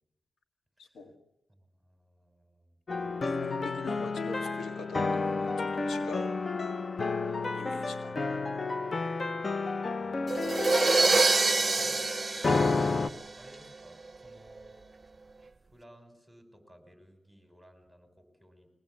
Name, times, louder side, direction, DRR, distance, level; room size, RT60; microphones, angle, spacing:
voice 1, 0.8-1.1 3.2-6.3 7.5-8.4, left 3 dB, 85° left, 6 dB, 2.3 m, -44 dB
voice 2, 1.8-2.8 9.9-11.1 11.6-12.1 12.9-14.8 15.7-18.7, equal, ahead, 6 dB, 6.2 m, -57 dB
sound 1, 2.9-13.1, left 3 dB, 40° left, 0.8 m, -31 dB
sound 2, 10.3-13.5, right 3 dB, 35° right, 0.7 m, -26 dB
23.5 x 19.0 x 8.4 m, 0.90 s
cardioid pair, 70°, 0 cm